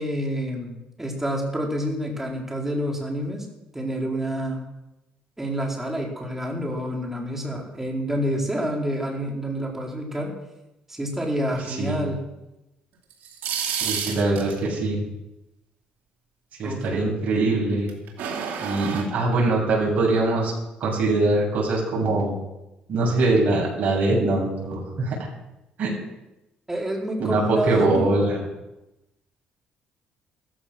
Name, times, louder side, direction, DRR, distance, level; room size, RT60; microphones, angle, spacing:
voice 1, 0.0-3.5 3.7-4.7 5.4-10.3 10.9-12.2 16.6-16.8 26.7-28.1, equal, 10° right, 0 dB, 4.6 m, -28 dB
voice 2, 11.7-12.0 13.8-15.0 16.6-17.9 18.6-20.5 20.8-22.3 22.9-25.2 25.8-26.0 27.2-28.4, right 2 dB, 55° right, -2 dB, 7.5 m, -22 dB
sound 1, 13.1-14.6 17.9-19.0, right 7 dB, 75° right, 3.6 m, -29 dB
15.0 x 14.5 x 6.3 m, 0.97 s
cardioid pair, 95°, 3 cm